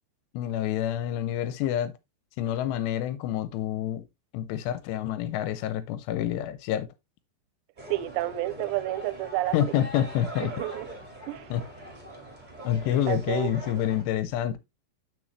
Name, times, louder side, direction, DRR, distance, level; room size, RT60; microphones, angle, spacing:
voice 1, 0.3-1.9 2.4-4.1 4.3-6.9 9.5-10.5 11.5-11.6 12.6-14.6, left 11 dB, 80° left, 2.6 m, -28 dB
sound 1, 7.8-14.0, right 1 dB, 30° right, 0.8 m, -42 dB
voice 2, 7.9-9.8 10.4-10.9 11.3-11.5 13.1-13.5, right 16 dB, 85° right, 2.8 m, -30 dB
7.2 x 6.1 x 3.1 m
omnidirectional pair, 5.1 m